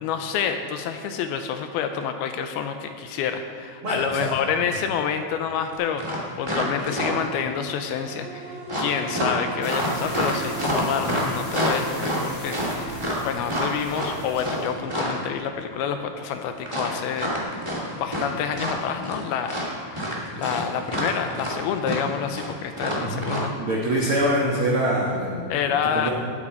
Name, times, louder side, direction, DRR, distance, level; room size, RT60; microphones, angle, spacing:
voice 1, 0.0-23.5 25.5-26.1, left 7 dB, 80° left, 7 dB, 2.4 m, -28 dB
voice 2, 3.8-4.3 20.3-20.4 23.0-23.2 23.6-26.1, right 1 dB, 85° right, -4 dB, 1.2 m, -25 dB
sound 1, 6.0-7.4 8.7-15.2 16.6-18.3 18.5-19.2 19.5-23.4, equal, 20° right, 0.8 m, -27 dB
sound 2, 7.1-21.8 22.2-22.3, right 3 dB, 50° right, 3.3 m, -42 dB
sound 3, 9.6-14.7, left 1 dB, 25° left, 2.6 m, -42 dB
18.5 x 8.7 x 4.4 m, 2.4 s
omnidirectional pair, 4.8 m